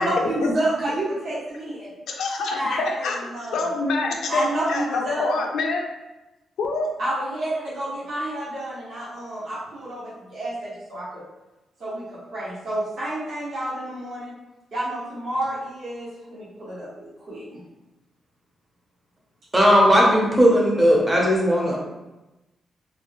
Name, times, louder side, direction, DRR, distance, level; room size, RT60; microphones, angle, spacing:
voice 1, 0.0-1.9 2.6-3.6 4.3-5.3 7.0-11.2 11.8-14.4 14.7-17.6, right 1 dB, 55° right, -11 dB, 1.1 m, -29 dB
voice 2, 2.1-3.2 3.5-5.8 6.6-7.0, left 3 dB, 85° left, 1 dB, 0.4 m, -26 dB
voice 3, 19.5-21.8, equal, 15° right, -3 dB, 0.6 m, -17 dB
3.0 x 2.3 x 2.6 m, 1.0 s
wide cardioid pair, 170°, 0 cm